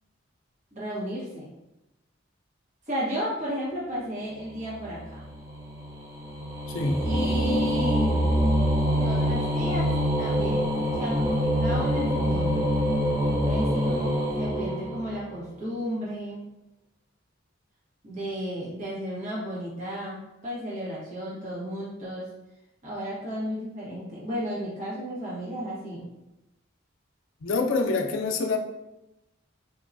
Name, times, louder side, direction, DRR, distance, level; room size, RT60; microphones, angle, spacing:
voice 1, 0.7-1.5 2.9-5.2 7.0-8.3 8.9-10.7 11.0-12.7 13.4-16.4 18.0-22.2 22.8-26.1, equal, 40° right, -8 dB, 1.0 m, -33 dB
sound 1, 4.5-15.4, equal, 15° right, 0.5 m, -25 dB
voice 2, 6.7-7.0 27.4-28.6, left 3 dB, 85° left, 3 dB, 0.4 m, -26 dB
4.3 x 2.2 x 2.5 m, 0.94 s
head